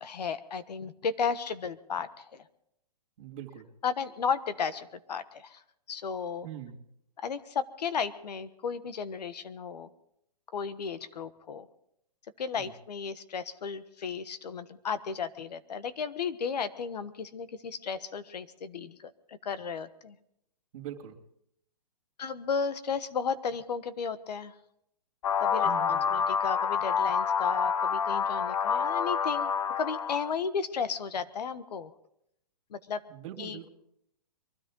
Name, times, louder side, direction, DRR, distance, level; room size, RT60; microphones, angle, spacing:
voice 1, 0.0-2.4 3.8-5.6 5.9-6.5 7.2-9.9 10.5-11.7 12.4-20.2 22.2-24.5 25.4-29.5 29.8-31.9 32.7-33.0 33.4-33.6, left 6 dB, 75° left, 14 dB, 1.3 m, -34 dB
voice 2, 3.2-3.7 6.4-6.9 12.6-12.7 20.7-21.2 25.6-26.1 33.1-33.7, right 11 dB, 50° right, 1 dB, 2.7 m, -42 dB
sound 1, 25.2-30.3, left 6 dB, 60° left, 0.9 m, -28 dB
23.0 x 13.0 x 3.8 m, 0.73 s
hypercardioid pair, 150°, 21 cm